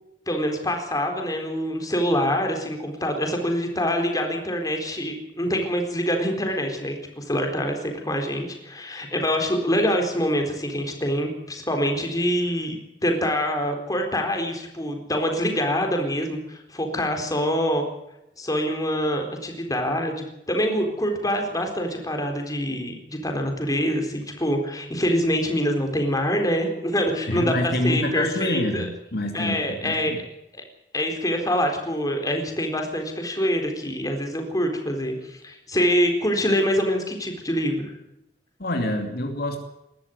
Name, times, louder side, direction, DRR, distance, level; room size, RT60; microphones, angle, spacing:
voice 1, 0.3-17.8 18.4-28.9 29.3-30.1 30.9-37.9, equal, 20° left, 3 dB, 4.2 m, -25 dB
voice 2, 27.3-30.2 38.6-39.6, left 1 dB, 60° left, 4 dB, 2.7 m, -27 dB
20.5 x 14.0 x 9.5 m, 0.85 s
head